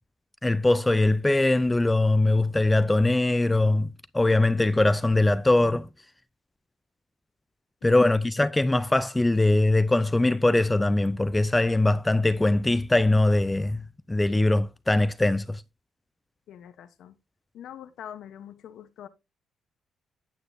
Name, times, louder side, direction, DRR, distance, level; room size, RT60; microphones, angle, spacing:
voice 1, 0.4-3.9 4.1-5.9 7.8-13.8 14.1-15.6, left 2 dB, 15° left, 0.5 m, -22 dB
voice 2, 7.8-8.2 16.5-17.2 17.5-19.1, left 10 dB, 75° left, 1.0 m, -44 dB
9.6 x 9.4 x 2.7 m
cardioid pair, 90°, 0 cm